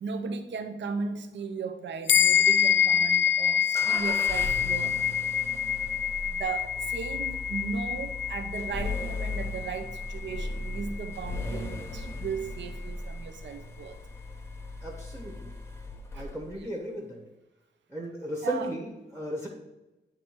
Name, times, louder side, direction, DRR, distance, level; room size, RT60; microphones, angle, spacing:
voice 1, 0.0-5.0 6.2-14.0 16.1-16.7 18.4-18.7, right 5 dB, 75° right, 0.6 m, -36 dB
sound 1, 2.1-11.8, left 9 dB, 80° left, 0.4 m, -27 dB
sound 2, 3.7-16.6, left 2 dB, 15° left, 0.7 m, -37 dB
voice 2, 14.8-15.5 16.1-17.2 17.9-19.5, right 1 dB, 15° right, 0.9 m, -35 dB
9.8 x 3.3 x 4.4 m
wide cardioid pair, 140°, 19 cm